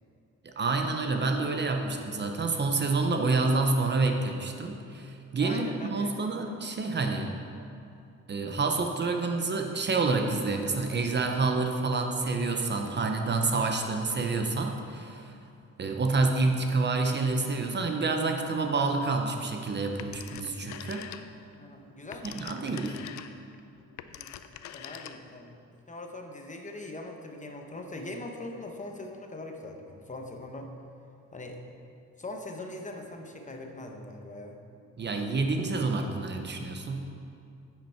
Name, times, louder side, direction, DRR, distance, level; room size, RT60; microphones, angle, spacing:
voice 1, 0.4-7.3 8.3-15.4 15.8-21.1 22.2-23.0 35.0-37.1, right 3 dB, 35° right, 4 dB, 0.8 m, -28 dB
voice 2, 5.4-6.5 21.5-23.0 24.1-24.4 24.7-30.7 31.3-31.6 32.2-34.6, left 2 dB, 25° left, 3 dB, 0.9 m, -42 dB
Telephone, 20.0-21.5 21.9-25.5, left 10 dB, 70° left, 0.5 m, -44 dB
9.9 x 5.8 x 4.5 m, 2.6 s
cardioid pair, 90°, 30 cm